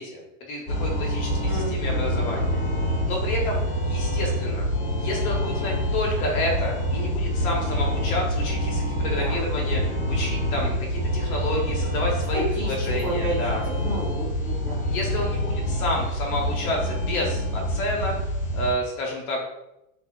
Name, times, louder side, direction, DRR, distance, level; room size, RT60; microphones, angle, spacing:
voice 1, 0.0-2.6 3.0-4.7 5.0-13.6 14.9-18.1 18.5-19.4, left 1 dB, 75° left, -2 dB, 1.2 m, -30 dB
sound 1, 0.7-18.7, equal, 25° left, 0.9 m, -26 dB
voice 2, 1.4-2.4 9.2-9.7 12.3-14.9, right 1 dB, 5° right, -7 dB, 0.5 m, -32 dB
3.2 x 2.1 x 3.6 m, 0.87 s
supercardioid pair, 170°, 43 cm